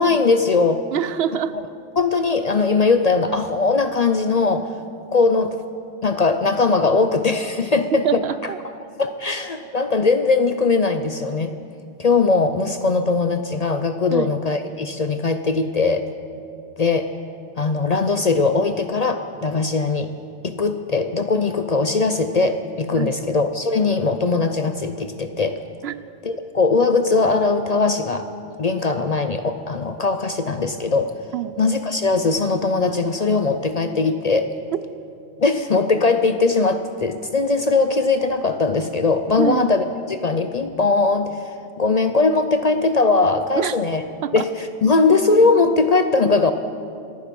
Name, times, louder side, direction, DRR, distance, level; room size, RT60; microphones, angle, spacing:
voice 1, 0.0-0.8 2.0-4.7 5.1-5.6 6.0-8.0 9.0-11.5 12.0-16.1 16.8-17.1 17.6-20.1 20.4-25.6 26.2-28.3 28.6-31.1 31.6-34.5 35.4-41.4 41.8-44.0 44.3-46.5, left 3 dB, 45° left, 8 dB, 0.6 m, -20 dB
voice 2, 0.9-1.5 7.9-8.6 14.1-14.3 23.0-23.2 25.8-25.9 31.3-31.6 34.7-34.8 39.4-39.6 43.6-43.7 44.2-44.5, right 9 dB, 70° right, 14 dB, 0.8 m, -24 dB
26.5 x 9.5 x 5.3 m, 2.4 s
omnidirectional pair, 1.2 m